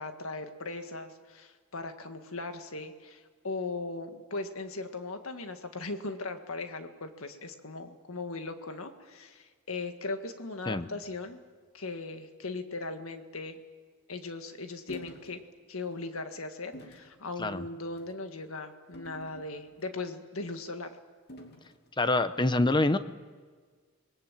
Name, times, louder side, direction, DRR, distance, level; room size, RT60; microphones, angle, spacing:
voice 1, 0.0-11.4 11.7-13.6 14.1-15.4 15.7-21.0, left 3 dB, 75° left, 7 dB, 1.8 m, -38 dB
sound 1, 14.9-15.3 15.8-16.0 16.7-17.1 17.9-18.2 18.9-19.8 21.3-21.8, equal, 50° left, 2.8 m, -48 dB
voice 2, 22.0-23.0, left 2 dB, 20° left, 12 dB, 0.8 m, -26 dB
27.5 x 21.5 x 7.5 m, 1.5 s
head